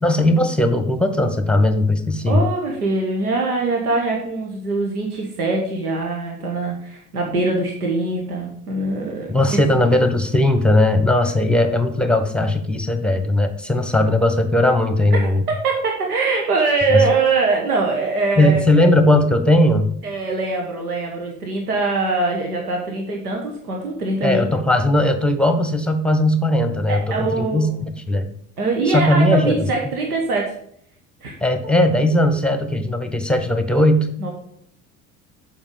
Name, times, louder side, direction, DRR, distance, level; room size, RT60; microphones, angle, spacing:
voice 1, 0.0-2.4 9.3-15.4 16.9-17.0 18.4-19.9 24.2-27.7 28.1-28.3 28.9-29.7 31.4-34.1, left 1 dB, ahead, 7 dB, 1.1 m, -18 dB
voice 2, 2.3-9.6 15.1-18.6 20.0-24.5 26.9-27.9 28.6-30.5 31.2-31.3 34.2-34.3, right 3 dB, 90° right, 0 dB, 1.1 m, -22 dB
7.2 x 5.3 x 5.2 m, 0.67 s
hypercardioid pair, 60°, 44 cm